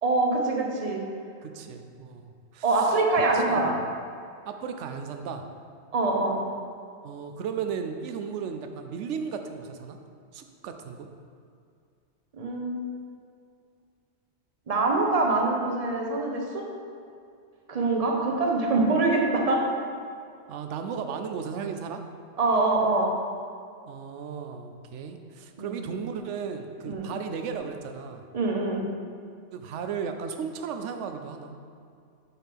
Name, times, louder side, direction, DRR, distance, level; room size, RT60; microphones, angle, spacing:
voice 1, 0.0-1.0 2.6-3.7 5.9-6.4 12.3-12.9 14.7-16.7 17.7-19.7 22.4-23.1 25.6-25.7 26.8-27.1 28.3-28.9, right 2 dB, 35° right, 0 dB, 0.8 m, -24 dB
voice 2, 1.4-3.6 4.4-5.5 7.0-10.0 10.3-11.1 20.5-22.0 23.9-28.2 29.5-31.5, right 6 dB, 80° right, 6 dB, 0.9 m, -35 dB
6.5 x 5.8 x 3.6 m, 2.3 s
omnidirectional pair, 1.2 m